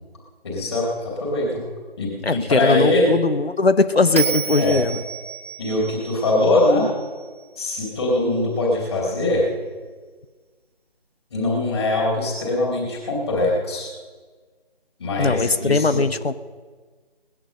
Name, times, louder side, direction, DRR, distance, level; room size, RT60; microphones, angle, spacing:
voice 1, 0.4-1.7 2.0-3.1 4.5-4.8 5.6-6.9 7.6-9.5 11.3-13.9 15.0-16.0, left 2 dB, 25° left, -2 dB, 4.3 m, -22 dB
voice 2, 2.2-5.0 15.2-16.4, left 3 dB, 75° left, 13 dB, 1.0 m, -20 dB
Bell, 4.2-7.4, right 6 dB, 15° right, 0.9 m, -30 dB
19.0 x 11.0 x 6.7 m, 1.4 s
figure-of-eight pair, 160°, 31 cm